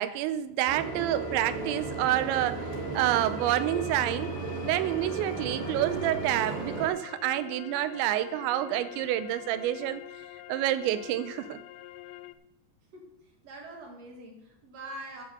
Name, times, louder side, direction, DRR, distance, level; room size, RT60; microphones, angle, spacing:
voice 1, 0.0-2.6 2.9-4.3 4.6-10.0 10.5-11.6, right 13 dB, 90° right, 12 dB, 3.0 m, -28 dB
sound 1, 0.7-6.9, right 4 dB, 70° right, 3.9 m, -35 dB
sound 2, 0.8-12.4, left 14 dB, 85° left, 2.9 m, -45 dB
voice 2, 13.4-15.2, right 1 dB, 55° right, 1 dB, 2.1 m, -43 dB
12.0 x 6.5 x 6.6 m, 0.82 s
omnidirectional pair, 5.1 m